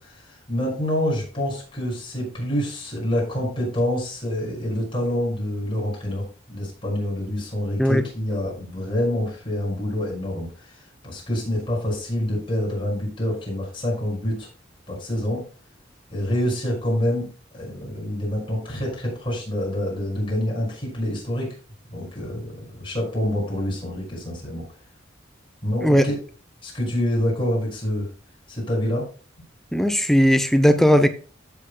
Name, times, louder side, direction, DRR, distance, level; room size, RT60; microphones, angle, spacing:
voice 1, 0.0-14.5 14.9-15.4 16.1-17.2 17.5-21.5 21.9-24.7 25.6-26.2 26.6-28.1 28.5-29.0, left 1 dB, 25° left, 5.8 m, -27 dB
voice 2, 29.7-31.1, equal, ahead, 0.6 m, -17 dB
15.0 x 7.9 x 2.2 m
head